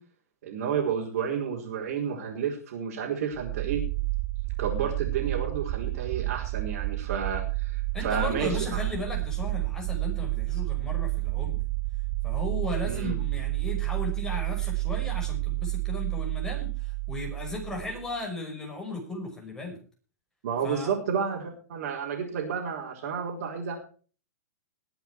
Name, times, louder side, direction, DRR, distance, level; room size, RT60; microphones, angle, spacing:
voice 1, 0.4-3.8 4.6-8.8 12.8-13.1 20.4-23.8, right 7 dB, 60° right, -4 dB, 4.9 m, -31 dB
sound 1, 3.3-18.1, right 25 dB, 35° right, 0.7 m, -30 dB
voice 2, 7.9-11.6 12.2-19.8 20.6-20.9, left 2 dB, 5° left, 0 dB, 5.8 m, -36 dB
21.5 x 8.0 x 4.8 m, 0.40 s
hypercardioid pair, 145°, 9 cm